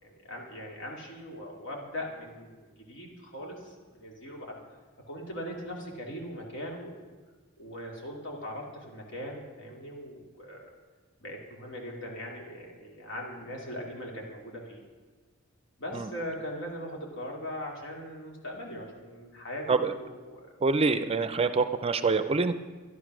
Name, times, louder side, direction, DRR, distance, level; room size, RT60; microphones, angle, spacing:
voice 1, 0.0-4.6 5.1-7.0 7.6-10.6 11.2-14.8 15.8-20.5, equal, 65° left, -1 dB, 2.8 m, -40 dB
voice 2, 20.6-22.6, right 4 dB, 30° right, 11 dB, 0.5 m, -26 dB
12.0 x 11.0 x 6.2 m, 1.4 s
head